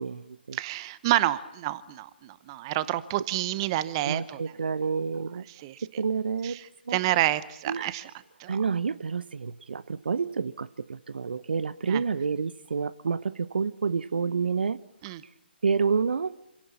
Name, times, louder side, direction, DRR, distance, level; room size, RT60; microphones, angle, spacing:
voice 1, 0.0-0.6 4.0-5.4 6.0-6.6 6.9-7.0 7.7-7.9 8.5-14.8 15.6-16.3, right 5 dB, 65° right, 0.8 m, -29 dB
voice 2, 0.5-4.4 5.6-5.8 6.4-8.1 8.4-8.6 11.9-12.0 15.0-15.2, right 15 dB, 25° right, 0.9 m, -29 dB
26.5 x 17.0 x 8.7 m
figure-of-eight pair, 140°, 6 cm